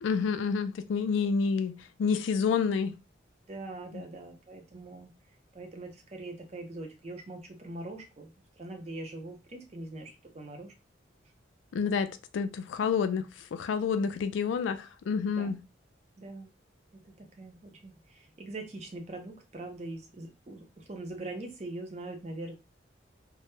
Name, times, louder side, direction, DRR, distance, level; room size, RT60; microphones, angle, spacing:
voice 1, 0.0-2.9 3.9-4.0 11.7-15.6, left 5 dB, 80° left, 0.3 m, -29 dB
voice 2, 3.5-5.1 5.5-10.7 15.3-15.5 16.2-16.5 16.9-22.5, right 2 dB, 35° right, 0.5 m, -42 dB
2.1 x 2.0 x 3.0 m
head